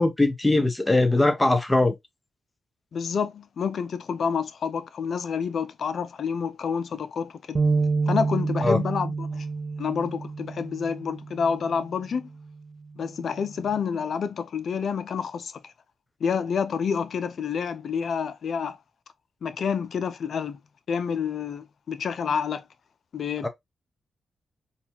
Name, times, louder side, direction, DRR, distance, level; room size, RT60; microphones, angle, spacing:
voice 1, 0.0-1.9 8.6-8.8 23.4-23.5, left 2 dB, 20° left, 0.9 m, -21 dB
voice 2, 2.9-7.6 8.1-9.5 9.8-12.3 13.0-15.7 16.2-18.8 19.4-20.6 20.9-22.6 23.1-23.5, left 6 dB, 70° left, 0.4 m, -28 dB
sound 1, 7.6-11.8 12.3-12.5 13.4-13.8, right 4 dB, 45° right, 0.6 m, -28 dB
4.0 x 2.3 x 2.8 m
supercardioid pair, 55°, 0 cm